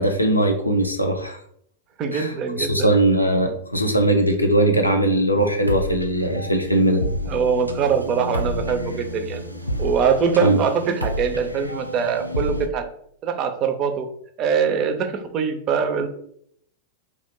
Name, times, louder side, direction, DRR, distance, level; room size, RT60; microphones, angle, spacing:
voice 1, 0.0-1.4 2.1-7.0 10.4-10.6, right 1 dB, 85° left, 4 dB, 0.5 m, -20 dB
voice 2, 2.0-2.9 7.3-9.4 9.8-12.8 13.2-14.1 14.4-16.1, right 6 dB, 35° right, 6 dB, 0.5 m, -23 dB
sound 1, 5.4-12.7, left 1 dB, 90° right, 0.3 m, -30 dB
2.7 x 2.4 x 3.6 m, 0.68 s
figure-of-eight pair, 90°, 0 cm